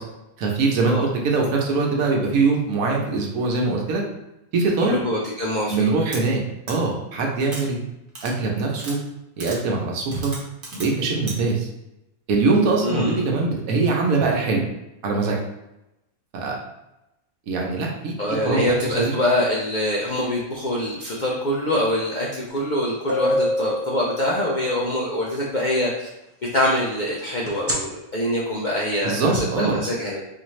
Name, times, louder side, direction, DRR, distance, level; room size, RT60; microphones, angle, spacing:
voice 1, 0.4-4.0 4.5-5.0 5.7-6.4 6.7-7.8 8.2-9.0 9.4-10.3 10.7-11.7 12.3-14.7 15.0-15.4 16.3-16.6 17.5-18.1 18.4-19.1 29.0-29.8, right 3 dB, 80° right, 0 dB, 1.2 m, -22 dB
voice 2, 4.8-5.9 12.8-13.3 18.2-26.1 26.5-30.2, left 1 dB, 60° left, -5 dB, 0.5 m, -24 dB
sound 1, 6.1-6.2 6.7-6.8 7.4-7.6 8.1-8.3 8.8-9.0 9.4-9.6 10.1-10.9 11.3-11.4, right 2 dB, 40° right, 1.1 m, -35 dB
sound 2, 22.6-22.7 23.1-24.8 27.5-27.7, left 1 dB, 20° right, 0.4 m, -25 dB
4.2 x 2.5 x 3.0 m, 0.91 s
omnidirectional pair, 1.5 m